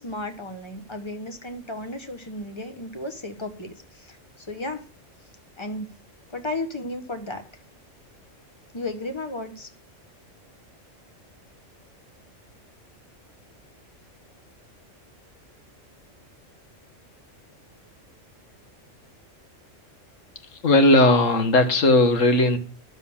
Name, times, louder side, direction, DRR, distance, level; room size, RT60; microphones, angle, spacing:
voice 1, 0.0-4.8 5.6-5.9 6.3-7.4 8.7-9.7, left 2 dB, 25° left, 6 dB, 1.2 m, -34 dB
voice 2, 20.6-22.6, left 2 dB, 80° left, 8 dB, 1.7 m, -17 dB
11.0 x 6.7 x 7.1 m, 0.41 s
omnidirectional pair, 1.3 m